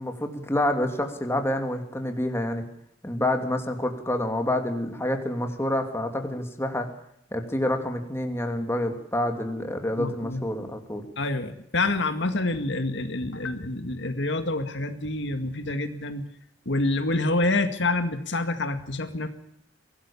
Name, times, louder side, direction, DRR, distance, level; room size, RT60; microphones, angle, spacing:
voice 1, 0.0-2.6 3.0-6.9 7.3-11.0, left 1 dB, 15° left, 4 dB, 2.8 m, -28 dB
voice 2, 10.0-10.7 11.2-16.2 16.7-19.3, left 2 dB, 65° left, 7 dB, 2.0 m, -27 dB
24.0 x 18.0 x 7.2 m, 0.74 s
head